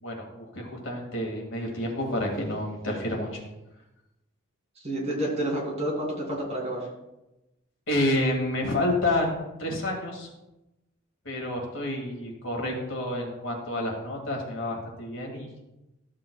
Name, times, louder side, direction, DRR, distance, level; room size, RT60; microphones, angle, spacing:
voice 1, 0.0-3.4 7.9-10.3 11.2-15.5, left 1 dB, 65° left, 0 dB, 2.2 m, -29 dB
voice 2, 4.8-6.9, right 1 dB, 30° right, -3 dB, 2.8 m, -29 dB
14.5 x 7.4 x 2.3 m, 0.96 s
head